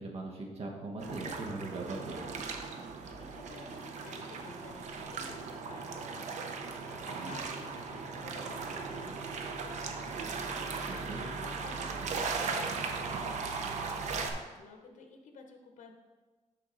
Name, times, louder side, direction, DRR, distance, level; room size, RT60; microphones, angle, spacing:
voice 1, 0.0-2.5 7.1-7.4 11.1-11.2, right 2 dB, 55° right, 0 dB, 1.1 m, -40 dB
sound 1, 1.0-14.3, right 4 dB, 70° right, 0.7 m, -38 dB
voice 2, 2.7-10.2 10.5-15.9, left 4 dB, 75° left, 4 dB, 0.9 m, -53 dB
6.9 x 5.8 x 3.8 m, 1.3 s
wide cardioid pair, 165°, 13 cm